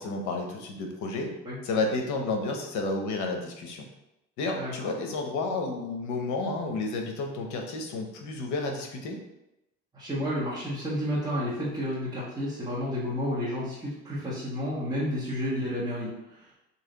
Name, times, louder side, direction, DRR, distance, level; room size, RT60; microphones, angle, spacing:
voice 1, 0.0-1.3 1.6-3.9 4.4-9.2, left 3 dB, 75° left, 2 dB, 0.9 m, -31 dB
voice 2, 4.5-4.9 9.9-16.4, equal, 15° right, -9 dB, 1.2 m, -31 dB
3.2 x 2.8 x 3.8 m, 0.91 s
cardioid pair, 105°, 30 cm